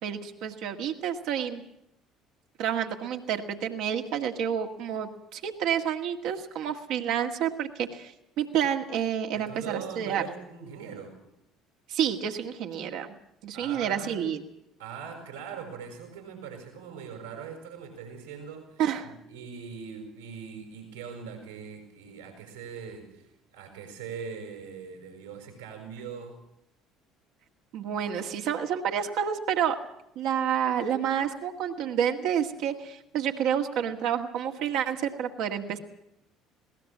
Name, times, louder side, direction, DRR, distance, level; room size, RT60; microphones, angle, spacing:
voice 1, 0.0-1.6 2.6-10.2 11.9-13.1 13.4-14.4 18.8-19.1 27.7-29.8 30.2-35.8, right 9 dB, 60° right, 4 dB, 1.8 m, -29 dB
voice 2, 9.3-11.2 13.5-14.2 14.8-26.4, right 6 dB, 80° right, 2 dB, 6.3 m, -41 dB
20.0 x 18.0 x 7.4 m, 0.80 s
figure-of-eight pair, 60°, 0 cm